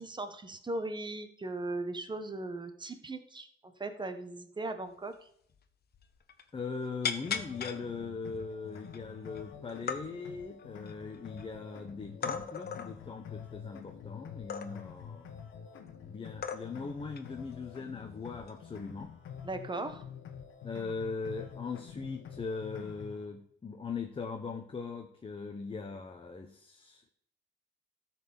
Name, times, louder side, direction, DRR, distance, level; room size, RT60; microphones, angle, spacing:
voice 1, 0.0-5.3 19.4-20.0, right 2 dB, 25° right, 8 dB, 1.3 m, -38 dB
sound 1, 5.1-5.2 5.5-5.7 5.9-6.5 7.0-7.8 8.4-8.5 8.8-9.4 9.7-10.0 10.6-11.4 12.2-12.9 14.5-15.0 15.9-16.0 16.4-16.9 17.2-17.4 18.4-18.7, left 6 dB, 50° left, 1.1 m, -37 dB
voice 2, 6.5-15.3 16.0-19.1 20.6-27.1, left 4 dB, 25° left, 4 dB, 1.1 m, -40 dB
sound 2, 7.3-23.3, left 8 dB, 80° left, 1.5 m, -48 dB
13.0 x 4.5 x 7.1 m, 0.68 s
cardioid pair, 90°, 20 cm